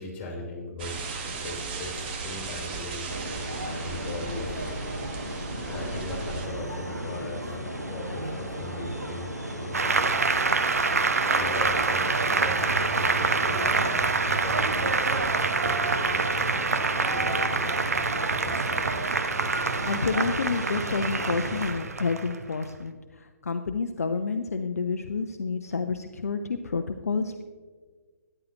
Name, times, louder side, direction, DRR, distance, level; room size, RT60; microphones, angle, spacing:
voice 1, 0.0-3.2 3.6-4.7 5.7-9.3 9.6-10.3 11.3-14.1 14.4-18.9, left 2 dB, 25° left, 0 dB, 3.2 m, -39 dB
sound 1, 0.8-6.5, right 4 dB, 40° right, 1.4 m, -36 dB
sound 2, 3.1-21.7, equal, 85° right, 1.6 m, -35 dB
Applause, 9.7-22.7, right 4 dB, 70° right, 0.8 m, -26 dB
voice 2, 19.6-27.4, left 4 dB, 65° left, 7 dB, 0.6 m, -29 dB
13.5 x 9.8 x 3.0 m, 1.5 s
figure-of-eight pair, 125°, 9 cm